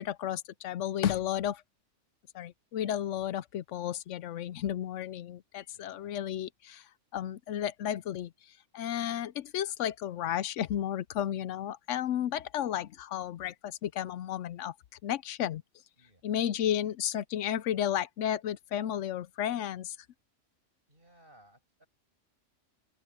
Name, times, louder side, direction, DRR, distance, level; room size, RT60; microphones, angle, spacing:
voice 1, 0.0-1.6 2.3-6.9 7.1-8.3 8.7-14.7 15.0-15.6 16.2-20.0, left 10 dB, 80° left, 0.9 m, -33 dB
voice 2, 5.7-6.2 16.0-16.2 20.9-21.9, right 1 dB, 45° right, 7.2 m, -61 dB
open air
omnidirectional pair, 1.3 m